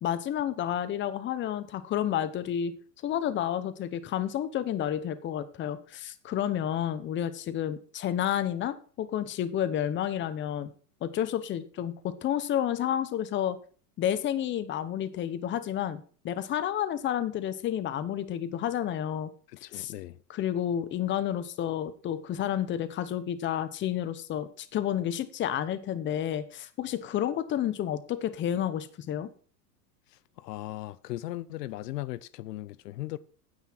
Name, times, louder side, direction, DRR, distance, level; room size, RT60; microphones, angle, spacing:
voice 1, 0.0-2.7 3.0-10.7 11.0-13.6 14.0-19.3 19.7-19.9 20.3-29.3, left 10 dB, 25° left, 0.8 m, -30 dB
voice 2, 19.5-20.2 30.1-33.2, left 16 dB, 90° left, 0.7 m, -38 dB
9.6 x 8.1 x 4.4 m
supercardioid pair, 130°, 47 cm